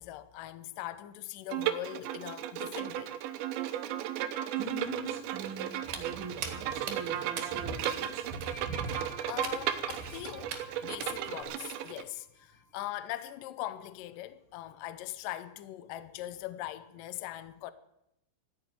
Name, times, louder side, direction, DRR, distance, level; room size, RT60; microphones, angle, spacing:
voice 1, 0.0-3.1 9.0-17.7, left 14 dB, 80° left, 2.0 m, -41 dB
Bowed string instrument, 1.5-12.0, right 11 dB, 85° right, 3.2 m, -35 dB
voice 2, 4.6-8.3, right 2 dB, 50° right, 1.6 m, -43 dB
Walk footsteps, 5.8-11.4, right 4 dB, 65° right, 3.3 m, -41 dB
sound 1, 8.4-13.0 13.3-13.6, equal, 45° left, 3.6 m, -53 dB
14.0 x 10.5 x 9.3 m
omnidirectional pair, 5.0 m